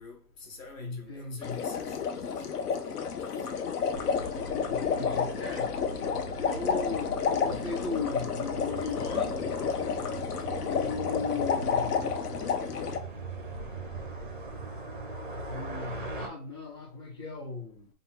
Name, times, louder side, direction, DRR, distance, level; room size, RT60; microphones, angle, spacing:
voice 1, 0.0-3.0, left 4 dB, 60° left, 1.5 m, -48 dB
voice 2, 0.8-1.6 4.7-5.7 6.4-9.4 9.7-10.2 10.7-12.1 15.5-17.9, left 4 dB, 20° left, 0.6 m, -37 dB
sound 1, 1.4-13.0, left 6 dB, 80° left, 0.9 m, -31 dB
sound 2, 3.9-16.3, right 2 dB, 35° right, 0.4 m, -40 dB
3.7 x 2.3 x 4.2 m
hypercardioid pair, 175°, 45 cm